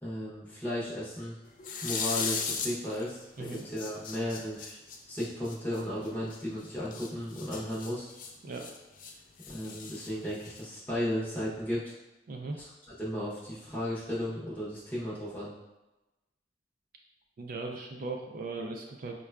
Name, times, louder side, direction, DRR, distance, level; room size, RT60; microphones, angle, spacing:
voice 1, 0.0-1.4 1.8-4.8 5.1-8.1 9.5-11.8 13.0-15.5, left 1 dB, 10° left, -9 dB, 0.7 m, -35 dB
sound 1, 1.6-3.1 3.4-6.4 6.9-9.1 9.4-10.7, left 5 dB, 50° left, 0.3 m, -37 dB
voice 2, 12.3-12.6 17.4-19.2, right 3 dB, 50° right, 2 dB, 0.3 m, -38 dB
4.6 x 2.2 x 2.2 m, 1.0 s
head